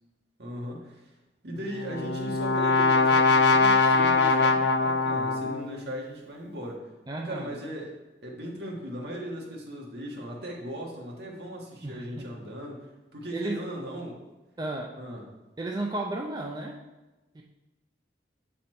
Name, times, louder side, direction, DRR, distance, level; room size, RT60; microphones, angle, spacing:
voice 1, 0.4-1.1 1.4-6.9 7.2-7.9 8.2-14.2 15.0-15.2, equal, 65° right, -1 dB, 1.5 m, -38 dB
Brass instrument, 1.6-5.8, left 3 dB, 75° left, 0.5 m, -22 dB
voice 2, 7.1-7.5 11.8-12.3 13.3-13.6 14.6-14.9 15.6-16.8 17.3-17.4, right 2 dB, 25° right, -1 dB, 0.4 m, -33 dB
7.9 x 4.2 x 4.3 m, 1.1 s
head